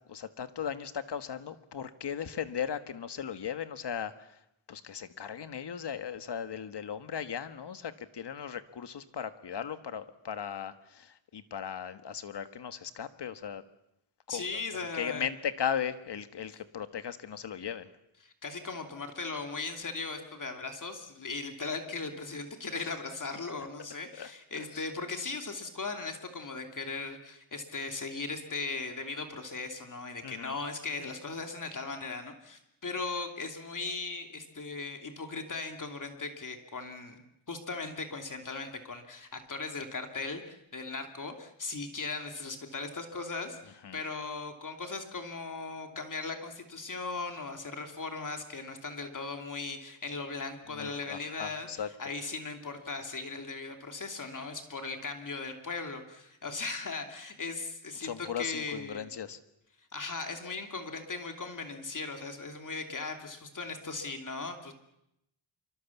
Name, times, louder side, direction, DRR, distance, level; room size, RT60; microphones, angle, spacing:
voice 1, 0.1-4.1 4.7-13.6 14.3-14.6 15.0-17.9 24.2-24.3 24.7-24.9 30.2-30.5 43.8-44.0 50.7-51.9 58.0-59.4, left 8 dB, 55° left, 10 dB, 1.7 m, -37 dB
voice 2, 14.3-15.3 18.2-37.2 37.5-59.1 59.9-64.7, left 4 dB, 40° left, 5 dB, 2.9 m, -38 dB
26.0 x 24.5 x 7.2 m, 0.82 s
wide cardioid pair, 110°, 49 cm